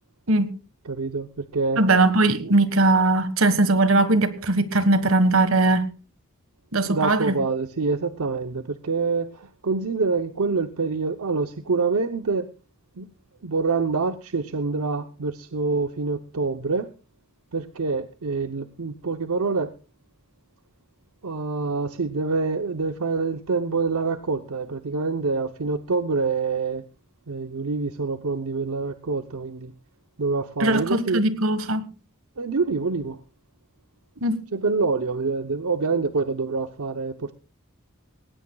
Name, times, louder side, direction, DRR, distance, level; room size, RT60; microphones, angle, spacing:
voice 1, 0.8-1.8 2.4-2.5 6.9-12.5 13.0-13.1 13.4-16.9 17.5-19.7 21.2-26.8 27.3-29.7 30.2-31.2 32.4-33.2 34.5-37.3, right 4 dB, 90° right, 0.7 m, -26 dB
voice 2, 1.8-5.8 6.7-7.3 30.6-31.8 34.2-34.4, right 2 dB, 70° right, 1.5 m, -20 dB
19.0 x 18.0 x 2.3 m
head